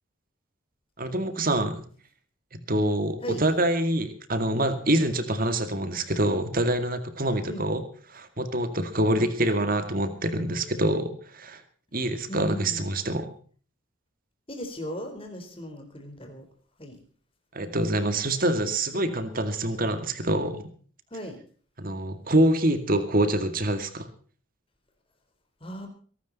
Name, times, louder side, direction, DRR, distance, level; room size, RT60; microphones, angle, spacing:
voice 1, 1.0-1.8 2.5-7.8 8.1-11.6 11.9-13.3 17.5-20.6 21.8-24.1, right 1 dB, 45° right, 10 dB, 2.1 m, -26 dB
voice 2, 12.3-12.8 14.5-16.4 16.8-17.0 18.9-19.2 21.1-21.4 25.6-25.9, equal, 25° left, 5 dB, 4.1 m, -37 dB
22.5 x 12.5 x 4.1 m, 0.43 s
head